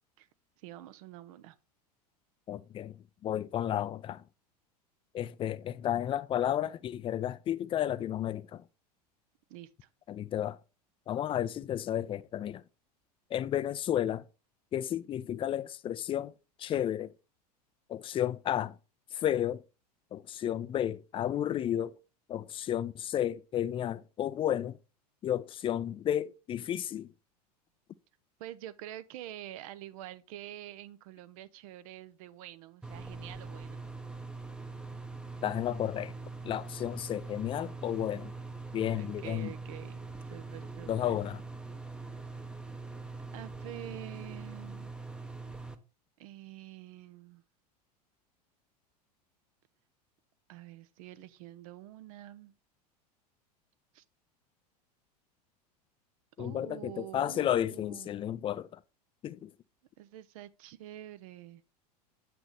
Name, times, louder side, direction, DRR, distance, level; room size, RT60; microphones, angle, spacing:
voice 1, 0.6-1.6 9.5-9.9 28.4-33.9 39.0-41.2 43.3-44.9 46.2-47.4 50.5-52.5 53.9-54.0 56.4-58.1 60.0-61.6, right 13 dB, 60° right, 0.7 m, -47 dB
voice 2, 2.5-3.0 3.2-4.2 5.1-8.6 10.1-10.6 11.1-12.6 13.3-14.2 14.7-16.3 16.6-17.1 17.9-18.8 19.1-19.6 20.1-21.9 22.3-24.8 25.2-27.1 35.4-36.1 36.4-38.3 38.7-39.5 40.9-41.4 56.4-58.8 59.2-59.5, left 11 dB, 25° left, 0.4 m, -32 dB
sound 1, 32.8-45.7, right 3 dB, 5° right, 0.7 m, -43 dB
8.1 x 6.0 x 3.4 m
hypercardioid pair, 85°, 21 cm